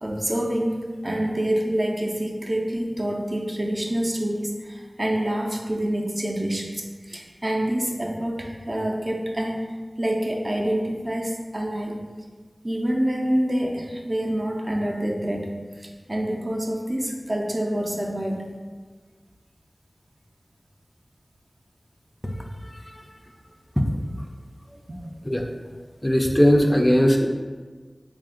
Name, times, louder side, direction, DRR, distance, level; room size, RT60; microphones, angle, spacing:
voice 1, 0.0-9.7 10.0-11.9 12.6-15.5 15.8-18.5, right 1 dB, 40° right, 0 dB, 0.5 m, -27 dB
voice 2, 22.4-23.0 23.8-23.9 25.2-25.4 26.0-27.3, equal, 15° left, 1 dB, 0.4 m, -20 dB
3.4 x 2.4 x 3.7 m, 1.4 s
wide cardioid pair, 50°, 0 cm